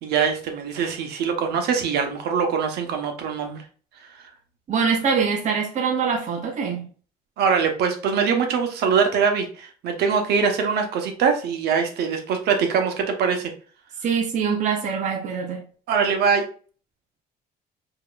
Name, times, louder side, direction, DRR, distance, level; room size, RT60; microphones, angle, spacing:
voice 1, 0.0-3.6 7.4-13.5 15.9-16.4, right 6 dB, 75° right, 1.0 m, -23 dB
voice 2, 4.7-6.9 14.0-15.6, right 6 dB, 45° right, 0.7 m, -24 dB
4.8 x 2.9 x 2.3 m
cardioid pair, 110°, 17 cm